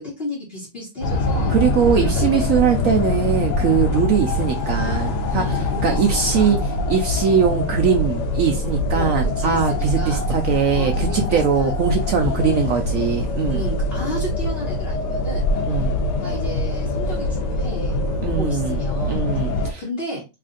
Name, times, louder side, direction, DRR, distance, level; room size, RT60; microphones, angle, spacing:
voice 1, 0.0-1.6 2.0-2.8 5.3-6.6 8.9-10.3 10.7-11.7 12.2-12.7 13.5-15.5 16.2-19.3 19.5-20.3, equal, 40° left, 1.1 m, -33 dB
sound 1, 1.0-19.7, left 2 dB, 75° left, 1.3 m, -23 dB
voice 2, 1.5-6.6 6.9-13.7 15.7-15.9 18.2-18.8 19.1-19.8, right 7 dB, 75° right, 0.7 m, -21 dB
3.3 x 2.4 x 3.8 m
omnidirectional pair, 1.9 m